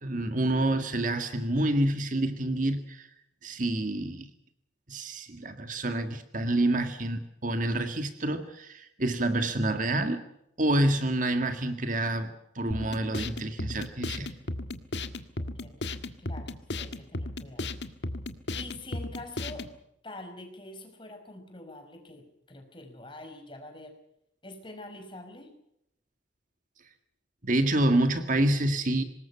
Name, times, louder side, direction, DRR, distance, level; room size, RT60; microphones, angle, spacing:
voice 1, 0.0-3.1 3.4-4.3 4.9-10.2 10.6-14.3 27.4-29.0, right 1 dB, 45° right, 7 dB, 1.9 m, -28 dB
sound 1, 12.7-19.7, left 2 dB, 65° left, 1.7 m, -35 dB
voice 2, 15.4-15.8 16.2-17.7 18.5-19.7 20.0-23.9 24.4-25.5, left 2 dB, 25° left, 5 dB, 5.2 m, -45 dB
25.5 x 20.5 x 5.8 m, 0.78 s
head